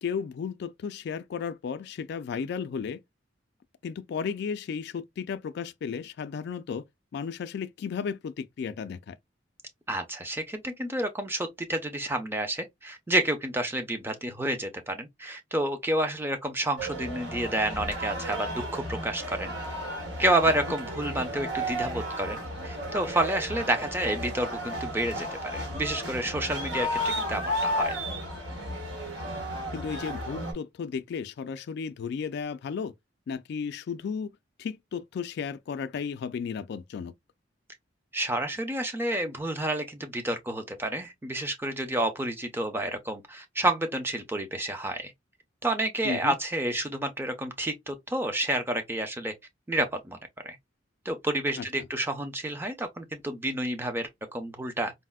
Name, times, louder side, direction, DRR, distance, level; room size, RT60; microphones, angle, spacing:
voice 1, 0.0-3.0 3.8-6.8 7.1-9.2 29.7-32.9 33.3-34.3 34.6-37.1 46.0-46.4 51.6-51.7, left 6 dB, 60° left, 0.3 m, -34 dB
voice 2, 9.9-19.5 20.2-25.3 25.5-28.0 38.1-45.1 45.6-49.3 49.7-50.2 50.4-50.6 51.1-54.9, right 1 dB, 10° right, 0.5 m, -29 dB
sound 1, 16.8-30.5, equal, 85° right, 1.3 m, -33 dB
4.1 x 2.0 x 2.2 m
head